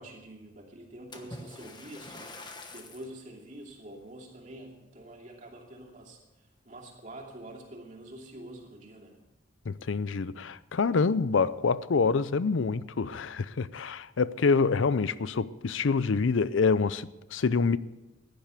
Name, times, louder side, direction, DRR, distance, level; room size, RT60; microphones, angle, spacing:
voice 1, 0.0-9.1 10.4-10.5, right 1 dB, 40° right, 2.7 m, -47 dB
Splash splatter, 1.1-3.2 3.8-4.0 4.6-4.7, left 2 dB, 20° left, 1.1 m, -45 dB
voice 2, 9.7-17.8, left 4 dB, 75° left, 0.5 m, -26 dB
15.5 x 10.5 x 6.8 m
head